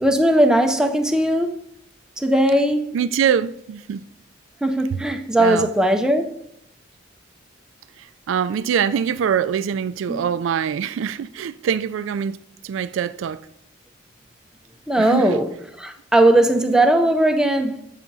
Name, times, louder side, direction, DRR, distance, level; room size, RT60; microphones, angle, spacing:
voice 1, 0.0-1.5 2.2-2.9 4.6-6.3 10.1-10.3 14.9-15.5 15.8-17.8, right 1 dB, 5° right, 0.4 m, -18 dB
voice 2, 2.9-4.1 5.4-5.7 8.0-13.4 15.0-15.4, right 8 dB, 75° right, 0.3 m, -24 dB
14.5 x 5.7 x 2.7 m
head